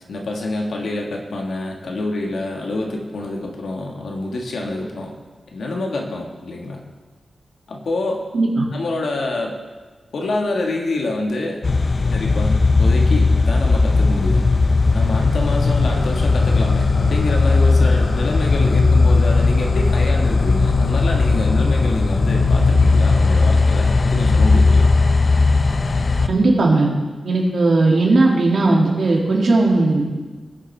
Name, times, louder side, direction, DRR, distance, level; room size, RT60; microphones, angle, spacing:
voice 1, 0.1-5.1 5.5-6.8 7.7-8.2 8.7-9.6 10.1-11.6 12.1-14.4 14.9-24.9, left 2 dB, 80° left, 1 dB, 1.6 m, -26 dB
voice 2, 8.3-8.7 26.3-26.9 27.2-30.0, right 2 dB, 65° right, -2 dB, 2.4 m, -16 dB
sound 1, 11.6-26.3, left 3 dB, 45° left, 0.6 m, -16 dB
19.0 x 7.1 x 3.4 m, 1.4 s
wide cardioid pair, 105°, 0 cm